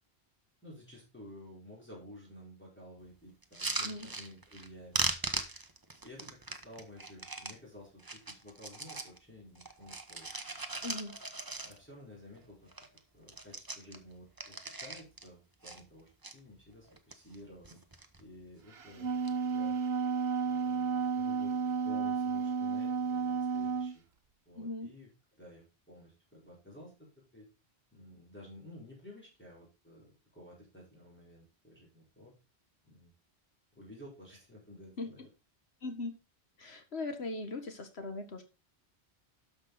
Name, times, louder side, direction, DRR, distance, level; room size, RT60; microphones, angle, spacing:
voice 1, 0.6-5.0 6.0-10.3 11.6-12.7 13.1-17.8 18.2-19.1 19.4-19.7 20.4-24.0 24.5-25.1 25.4-27.1 27.3-27.5 27.9-32.3 32.8-33.1 33.7-35.3, left 1 dB, 10° left, -5 dB, 4.5 m, -53 dB
sound 1, 3.4-4.7 4.9-7.6 8.0-9.2 9.5-12.0 12.4-12.5 12.7-13.0 13.2-15.3 15.6-16.3 16.9-17.4 17.6-18.2 19.0-19.3, right 2 dB, 20° right, 0.9 m, -39 dB
voice 2, 10.8-11.2 24.6-24.9 35.0-35.1 35.8-36.2 36.6-38.4, left 2 dB, 70° left, 7 dB, 1.9 m, -39 dB
Wind instrument woodwind instrument, 18.8-24.0, right 6 dB, 70° right, 1.4 m, -32 dB
12.5 x 5.9 x 3.9 m, 0.28 s
omnidirectional pair, 1.1 m